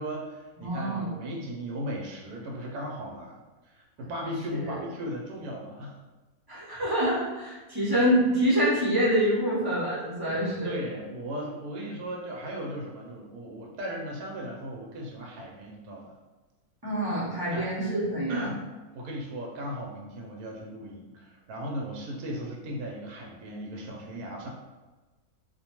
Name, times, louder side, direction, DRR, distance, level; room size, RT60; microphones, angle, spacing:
voice 1, 0.0-6.0 10.3-16.1 17.5-17.7 18.3-18.6 18.9-24.5, right 1 dB, 90° right, -2 dB, 1.1 m, -37 dB
voice 2, 0.6-1.1 4.2-4.7 6.5-10.7 16.8-18.5, equal, 25° right, -9 dB, 0.5 m, -26 dB
2.5 x 2.2 x 2.9 m, 1.2 s
omnidirectional pair, 1.6 m